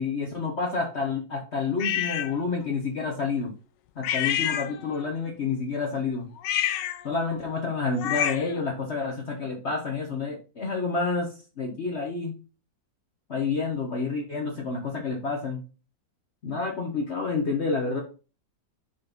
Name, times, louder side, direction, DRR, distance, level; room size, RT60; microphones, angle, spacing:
voice 1, 0.0-3.5 4.0-6.3 7.0-12.3 13.3-15.6 16.4-18.0, left 4 dB, 45° left, 1 dB, 1.1 m, -29 dB
sound 1, 1.8-2.3 4.0-5.1 6.4-8.6, left 11 dB, 75° left, 1.2 m, -29 dB
5.5 x 4.3 x 5.1 m, 0.34 s
omnidirectional pair, 2.0 m